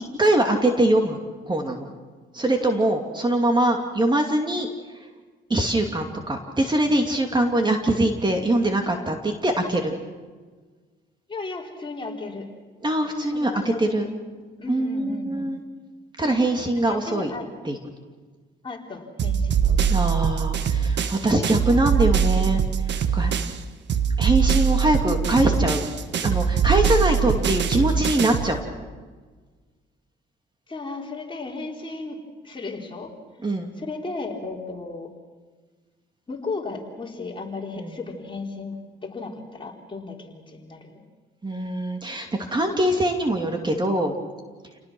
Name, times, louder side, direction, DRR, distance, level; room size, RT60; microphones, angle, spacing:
voice 1, 0.2-1.2 1.5-1.9 2.3-4.7 5.5-10.0 12.8-13.5 13.8-14.1 14.7-15.6 16.2-17.3 17.6-17.8 19.9-22.6 22.9-23.3 24.2-25.9 26.2-28.6 33.4-33.7 37.8-37.9 41.4-44.1, right 1 dB, 20° right, 4 dB, 2.6 m, -23 dB
voice 2, 11.3-12.5 13.3-14.1 14.6-15.5 16.8-17.5 18.6-19.9 20.8-20.9 25.1-25.7 27.1-27.6 30.7-32.2 32.4-33.1 33.7-35.1 36.3-38.8 39.0-41.0, left 3 dB, 25° left, 0 dB, 4.1 m, -35 dB
sound 1, 19.2-23.6 23.9-28.5, right 7 dB, 60° right, 1.4 m, -22 dB
29.0 x 19.0 x 6.2 m, 1.4 s
cardioid pair, 90°, 20 cm